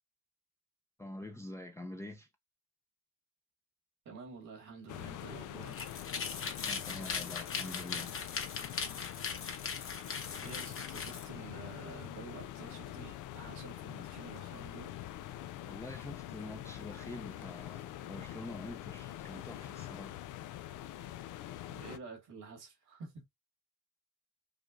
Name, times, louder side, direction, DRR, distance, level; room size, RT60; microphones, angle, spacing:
voice 1, 1.0-2.3 6.6-8.2 15.6-20.2, left 1 dB, 10° left, 0.5 m, -46 dB
voice 2, 4.1-5.9 10.4-14.9 21.7-23.2, right 4 dB, 80° right, 2.3 m, -49 dB
sound 1, 4.9-22.0, left 13 dB, 85° left, 0.5 m, -45 dB
sound 2, 5.6-11.3, left 5 dB, 45° left, 1.2 m, -39 dB
5.0 x 2.4 x 2.4 m
cardioid pair, 90°, 30 cm